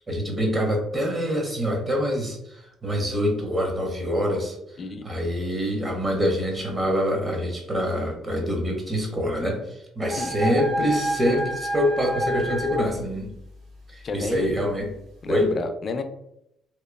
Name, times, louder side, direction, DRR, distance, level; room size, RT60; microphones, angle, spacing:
voice 1, 0.0-4.6 5.0-13.3 13.9-14.9 15.3-15.5, equal, 30° right, 2 dB, 0.9 m, -25 dB
sound 1, 10.1-12.8, equal, 75° right, 0.8 m, -28 dB
voice 2, 14.0-14.5 15.2-16.0, left 4 dB, 45° left, 7 dB, 0.4 m, -30 dB
2.9 x 2.1 x 2.3 m, 0.79 s
supercardioid pair, 75°, 0 cm